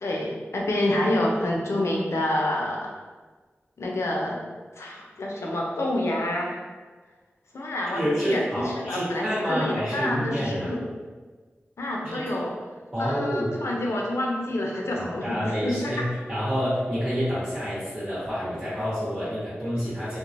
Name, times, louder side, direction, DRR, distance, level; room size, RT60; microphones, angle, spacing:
voice 1, 0.0-2.8 3.8-4.4 4.8-6.6 7.5-10.8 11.8-12.5 13.0-16.1, left 1 dB, 80° left, -1 dB, 0.5 m, -28 dB
voice 2, 7.9-10.7 12.1-12.2 12.9-13.5 15.0-20.2, equal, 25° right, -11 dB, 1.0 m, -28 dB
2.9 x 2.0 x 2.5 m, 1.4 s
cardioid pair, 40°, 5 cm